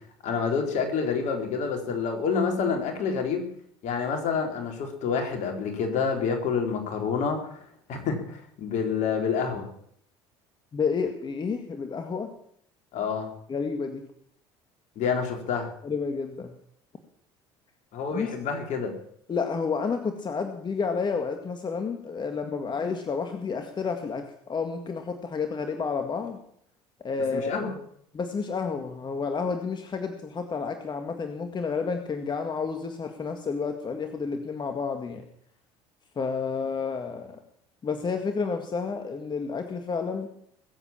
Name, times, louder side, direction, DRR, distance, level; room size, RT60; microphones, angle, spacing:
voice 1, 0.2-3.5 3.8-7.6 7.9-9.7 12.9-13.3 15.0-15.7 17.9-18.9 27.3-27.7, left 5 dB, 60° left, 4 dB, 4.0 m, -28 dB
voice 2, 10.7-12.3 13.5-14.1 15.8-16.5 18.1-18.3 19.3-26.4 27.0-27.5 28.1-35.2 36.2-37.4 37.8-40.3, left 5 dB, 35° left, 6 dB, 2.0 m, -30 dB
21.0 x 8.2 x 7.4 m, 0.67 s
supercardioid pair, 80°, 13 cm